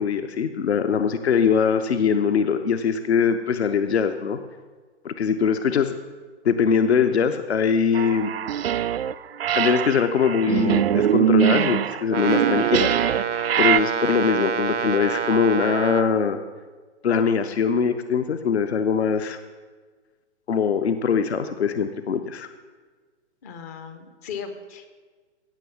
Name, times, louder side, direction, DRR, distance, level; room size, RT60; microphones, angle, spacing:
voice 1, 0.0-4.4 5.0-5.9 6.4-8.3 9.5-13.0 13.6-16.4 17.0-19.4 20.5-22.5, left 6 dB, 65° left, 9 dB, 0.8 m, -22 dB
sound 1, 7.9-9.1 9.4-13.8, right 9 dB, 55° right, 0.4 m, -22 dB
Brass instrument, 12.1-16.2, right 7 dB, 80° right, 0.9 m, -27 dB
voice 2, 23.4-24.9, left 6 dB, 15° left, 8 dB, 0.5 m, -37 dB
16.5 x 6.1 x 7.0 m, 1.4 s
figure-of-eight pair, 125°, 35 cm